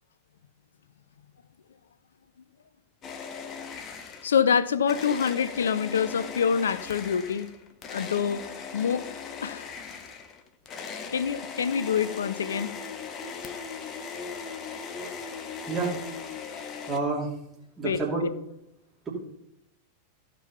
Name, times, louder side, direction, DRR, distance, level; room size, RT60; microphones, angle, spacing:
sound 1, 3.0-4.5 4.9-17.0, left 5 dB, 30° left, 1.3 m, -39 dB
voice 1, 4.2-7.5 7.9-8.4 8.7-9.1 9.4-9.7 11.1-12.7 17.8-18.0, left 7 dB, 65° left, 0.5 m, -26 dB
voice 2, 15.7-16.0 16.4-16.5 16.9-17.4 17.8-18.3, right 3 dB, 15° right, 3.0 m, -29 dB
15.0 x 5.3 x 5.7 m
figure-of-eight pair, 90°, 0 cm